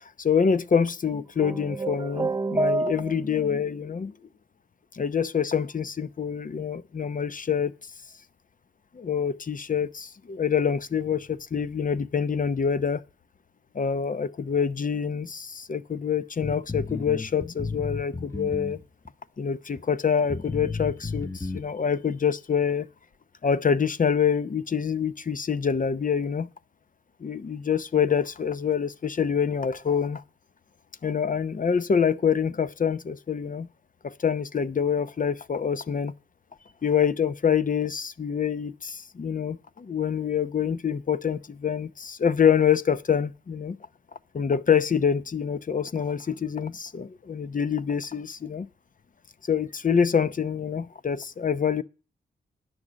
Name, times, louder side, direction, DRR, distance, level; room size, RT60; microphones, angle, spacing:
voice 1, 0.2-4.1 4.9-7.7 8.9-13.0 13.7-18.8 19.4-22.9 23.4-26.5 27.2-30.2 31.0-33.7 34.0-36.1 36.8-43.8 44.3-48.7 49.5-51.8, left 7 dB, 45° left, 0.8 m, -26 dB
sound 1, 1.4-3.5, right 2 dB, 20° right, 0.5 m, -28 dB
sound 2, 16.4-19.1 19.8-19.9 20.3-21.6, left 3 dB, 15° left, 1.2 m, -33 dB
9.9 x 6.5 x 7.4 m
cardioid pair, 55°, 19 cm